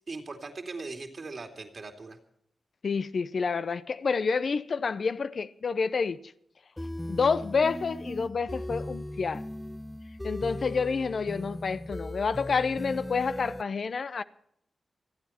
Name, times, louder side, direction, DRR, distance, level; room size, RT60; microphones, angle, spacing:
voice 1, 0.1-2.2, right 3 dB, 60° right, 2.6 m, -39 dB
voice 2, 2.8-6.2 7.1-9.4 10.2-14.2, left 5 dB, 65° left, 0.7 m, -28 dB
sound 1, 6.8-13.6, left 1 dB, 15° left, 0.6 m, -38 dB
27.0 x 9.3 x 4.4 m
cardioid pair, 45°, 0 cm